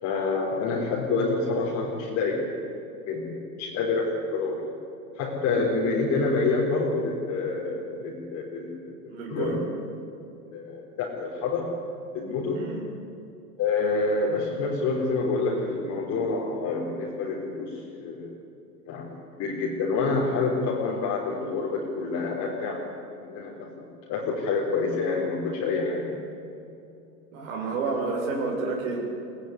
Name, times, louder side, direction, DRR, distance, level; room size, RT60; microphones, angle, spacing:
voice 1, 0.0-2.5 3.1-4.7 5.1-9.6 10.5-11.8 12.1-12.7 13.6-18.3 18.9-22.9 23.2-26.2, left 3 dB, 35° left, -3 dB, 4.4 m, -28 dB
voice 2, 9.1-9.6 12.5-12.8 27.3-29.3, right 3 dB, 60° right, -1 dB, 6.9 m, -30 dB
22.5 x 20.0 x 9.8 m, 2.7 s
hypercardioid pair, 125°, 46 cm